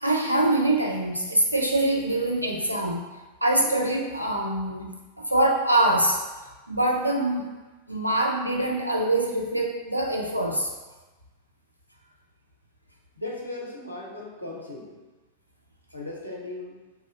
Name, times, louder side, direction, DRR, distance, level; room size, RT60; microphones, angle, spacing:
voice 1, 0.0-3.0 3.4-6.2 6.7-7.5 7.9-10.7, right 1 dB, 90° right, 0 dB, 0.4 m, -24 dB
voice 2, 13.2-15.0 15.9-16.8, left 2 dB, 85° left, -3 dB, 0.7 m, -37 dB
2.8 x 2.4 x 3.8 m, 1.2 s
figure-of-eight pair, 90°, 0 cm